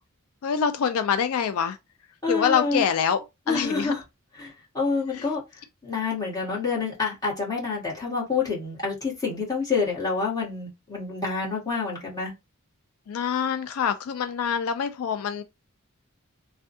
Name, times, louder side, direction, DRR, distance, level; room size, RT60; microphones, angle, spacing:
voice 1, 0.4-1.8 2.3-3.9 5.1-5.3 13.1-15.4, left 7 dB, 80° left, 0.3 m, -25 dB
voice 2, 2.2-2.8 3.5-4.0 4.4-4.5 4.7-5.4 5.8-12.3, left 4 dB, 15° left, 1.5 m, -27 dB
3.4 x 2.2 x 2.6 m
head